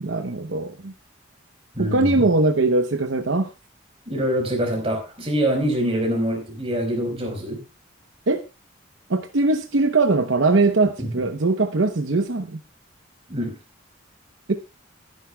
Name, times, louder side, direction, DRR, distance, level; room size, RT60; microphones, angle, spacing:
voice 1, 0.0-0.9 1.8-3.5 8.3-8.4 9.1-12.6 14.5-14.6, right 3 dB, 75° right, 0.9 m, -21 dB
voice 2, 1.7-2.2 4.1-7.6 11.0-11.1 13.3-13.5, equal, 30° right, 4.6 m, -24 dB
21.0 x 10.5 x 2.3 m
head